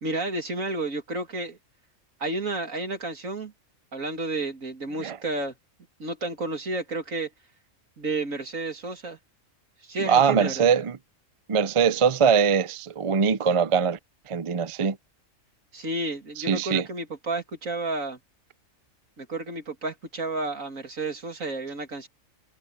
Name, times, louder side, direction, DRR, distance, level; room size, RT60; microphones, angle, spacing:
voice 1, 0.0-1.6 2.2-3.5 3.9-5.5 6.0-7.3 8.0-9.2 9.8-10.7 15.7-18.2 19.2-22.1, right 2 dB, 75° right, 3.0 m, -31 dB
voice 2, 10.0-11.0 11.5-14.0 14.3-15.0 16.4-16.9, right 6 dB, 35° right, 0.5 m, -22 dB
omnidirectional pair, 1.4 m